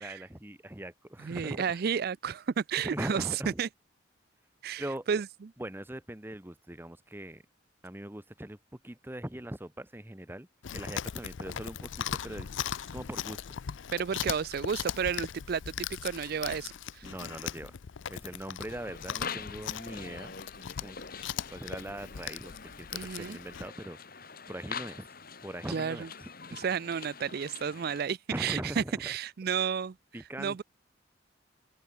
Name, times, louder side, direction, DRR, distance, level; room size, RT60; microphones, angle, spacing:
voice 1, 0.0-1.8 2.8-3.6 4.8-5.1 5.6-7.4 7.8-8.6 8.8-10.5 10.7-12.5 12.9-13.4 17.0-17.8 18.1-20.3 20.8-21.0 21.5-25.1 25.4-26.3 28.3-29.1 30.1-30.6, right 1 dB, 10° right, 1.0 m, -41 dB
voice 2, 1.2-3.7 4.6-5.3 13.9-17.1 22.9-23.4 25.7-26.1 26.5-29.9 30.4-30.6, right 7 dB, 55° right, 0.4 m, -32 dB
Chewing mastication, 10.6-23.7, left 9 dB, 75° left, 0.5 m, -39 dB
sound 1, 18.7-28.0, left 5 dB, 50° left, 4.3 m, -44 dB
head